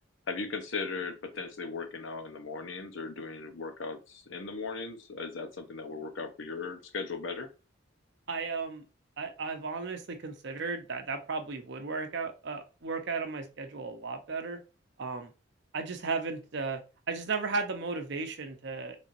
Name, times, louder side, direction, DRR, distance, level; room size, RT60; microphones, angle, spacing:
voice 1, 0.3-7.5, left 4 dB, 75° left, 6 dB, 0.8 m, -37 dB
voice 2, 8.3-8.8 9.2-14.6 15.0-15.3 15.7-16.8 17.1-19.0, right 4 dB, 60° right, 6 dB, 0.8 m, -35 dB
4.1 x 3.4 x 2.6 m, 0.31 s
head